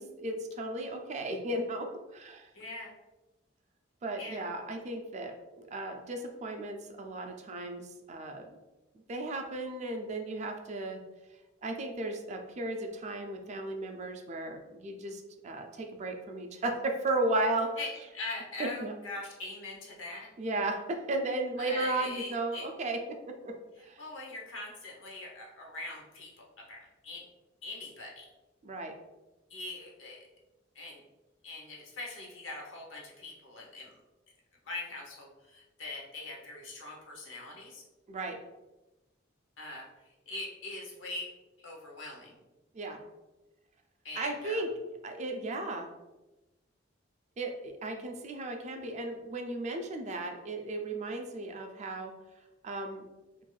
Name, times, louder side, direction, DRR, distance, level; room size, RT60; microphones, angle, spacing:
voice 1, 0.0-2.5 4.0-8.4 9.1-11.0 11.6-17.7 18.6-18.9 20.4-23.5 23.8-24.0 28.6-28.9 38.1-38.4 42.7-43.0 44.2-44.7 45.0-45.9 47.4-52.1 52.6-53.1, right 2 dB, 35° right, 4 dB, 0.3 m, -35 dB
voice 2, 2.5-2.9 4.2-4.5 17.8-20.3 21.6-22.7 24.0-27.3 27.6-28.3 29.5-30.3 30.7-31.0 31.4-33.9 34.6-37.8 39.6-41.3 41.6-42.4 44.0-44.7, left 2 dB, 80° left, -1 dB, 0.7 m, -42 dB
2.5 x 2.2 x 3.1 m, 1.0 s
head